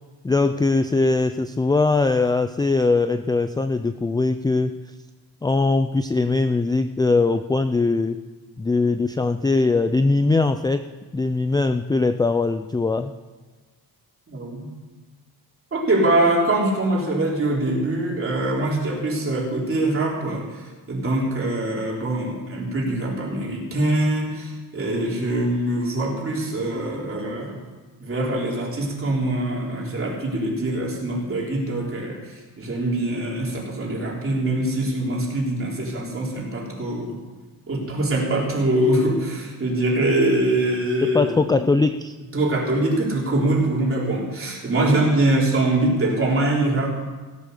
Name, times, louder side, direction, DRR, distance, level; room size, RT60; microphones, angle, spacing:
voice 1, 0.2-4.7 5.4-8.2 8.6-10.8 11.1-13.1 41.0-42.2, left 3 dB, 10° left, 10 dB, 0.3 m, -21 dB
voice 2, 14.3-14.7 15.7-27.6 28.0-37.2 37.7-41.5 42.3-46.9, right 1 dB, 35° right, -3 dB, 3.7 m, -23 dB
17.0 x 8.3 x 6.6 m, 1.3 s
wide cardioid pair, 150°, 37 cm